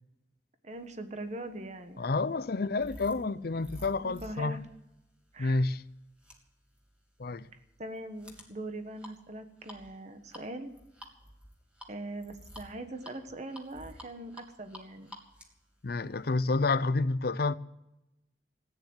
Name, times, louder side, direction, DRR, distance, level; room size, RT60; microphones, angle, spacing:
voice 1, 0.6-2.0 4.0-4.6 5.3-5.6 7.8-10.7 11.9-15.1, right 1 dB, 40° right, 1.3 m, -41 dB
sound 1, 1.2-16.8, equal, 5° right, 2.3 m, -52 dB
voice 2, 2.0-4.6 5.4-5.8 7.2-7.5 15.8-17.6, left 3 dB, 55° left, 0.6 m, -29 dB
16.0 x 9.6 x 7.9 m
head